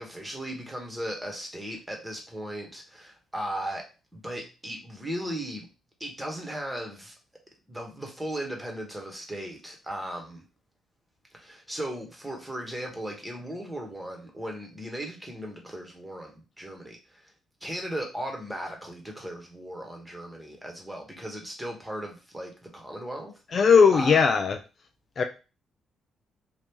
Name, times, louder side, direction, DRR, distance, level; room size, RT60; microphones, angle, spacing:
voice 1, 0.0-3.8 4.1-5.7 6.0-7.1 7.7-10.4 11.3-17.3 17.6-23.6 23.9-24.2, right 1 dB, 10° right, 1 dB, 1.1 m, -37 dB
voice 2, 23.5-24.6 25.2-25.3, left 6 dB, 45° left, 5 dB, 0.4 m, -18 dB
2.9 x 2.5 x 3.5 m, 0.31 s
cardioid pair, 90°, 0 cm